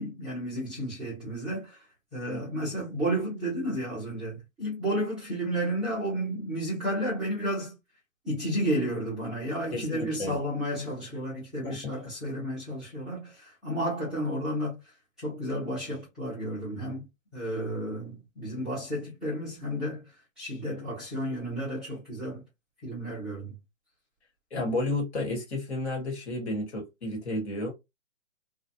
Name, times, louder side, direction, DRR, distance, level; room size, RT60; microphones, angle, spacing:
voice 1, 0.0-1.8 2.1-7.7 8.2-14.8 15.2-17.1 17.3-20.0 20.4-22.4 22.8-23.5, right 1 dB, ahead, 0.4 m, -32 dB
voice 2, 9.7-10.4 11.6-11.9 24.5-27.7, left 2 dB, 55° left, 1.3 m, -32 dB
2.4 x 2.2 x 2.7 m
hypercardioid pair, 140°, 39 cm